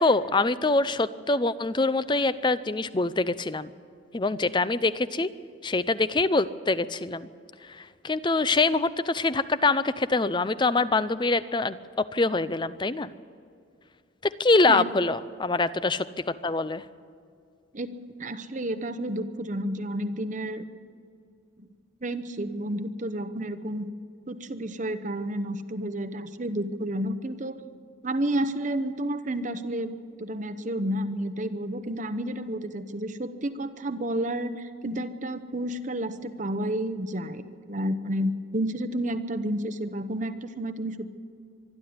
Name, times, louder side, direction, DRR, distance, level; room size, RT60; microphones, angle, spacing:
voice 1, 0.0-3.7 4.1-5.3 5.6-7.3 8.0-13.1 14.2-16.8, left 3 dB, 25° left, 14 dB, 0.5 m, -24 dB
voice 2, 17.7-20.6 21.6-21.7 22.0-23.9 24.3-27.6 28.0-37.4 37.7-41.1, right 1 dB, 40° right, 10 dB, 0.9 m, -31 dB
24.5 x 12.0 x 9.6 m, 2.3 s
head